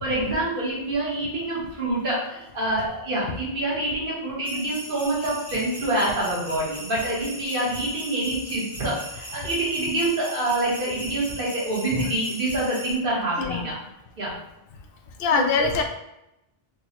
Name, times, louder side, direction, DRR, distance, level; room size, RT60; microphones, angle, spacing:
voice 1, 0.0-13.8 14.2-14.3 15.3-15.7, right 1 dB, 55° right, -6 dB, 1.5 m, -26 dB
sound 1, 4.4-13.0, equal, 15° left, 1.0 m, -39 dB
voice 2, 15.2-15.8, left 5 dB, 70° left, 3 dB, 0.8 m, -23 dB
4.4 x 2.3 x 2.8 m, 0.85 s
omnidirectional pair, 1.1 m